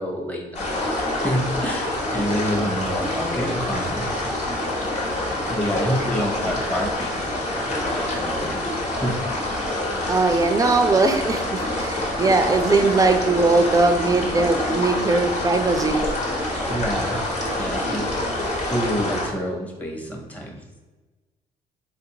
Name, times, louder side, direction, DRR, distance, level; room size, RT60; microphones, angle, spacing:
voice 1, 0.0-4.0 5.5-9.2 16.7-17.2 17.5-18.1 18.6-20.6, equal, 10° left, 0 dB, 0.9 m, -28 dB
sound 1, 0.5-19.3, left 1 dB, 45° left, 1.2 m, -26 dB
voice 2, 10.1-16.0, right 3 dB, 20° right, 6 dB, 0.5 m, -20 dB
3.8 x 2.5 x 2.9 m, 1.2 s
supercardioid pair, 70°, 16 cm